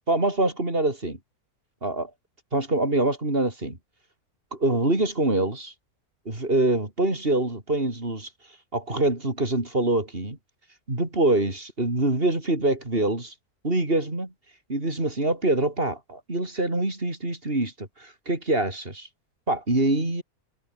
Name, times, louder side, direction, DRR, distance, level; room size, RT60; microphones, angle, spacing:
voice 1, 0.1-1.2 1.8-2.1 2.5-3.8 4.5-5.7 6.2-8.3 8.7-10.4 10.9-13.3 13.6-14.3 14.7-19.1 19.5-20.2, right 2 dB, 35° right, 5.2 m, -25 dB
omnidirectional pair, 1.6 m